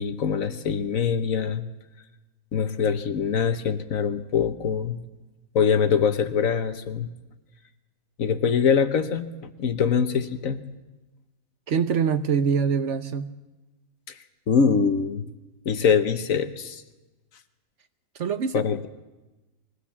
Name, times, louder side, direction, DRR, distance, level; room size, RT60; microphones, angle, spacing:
voice 1, 0.0-1.6 2.5-5.0 5.5-7.1 8.2-9.3 9.6-10.6 14.5-15.3 15.6-16.8 18.5-18.9, left 6 dB, 65° left, 10 dB, 1.4 m, -23 dB
voice 2, 11.7-13.3 18.2-18.6, right 6 dB, 55° right, 11 dB, 1.0 m, -24 dB
22.0 x 16.5 x 7.3 m, 1.1 s
omnidirectional pair, 1.6 m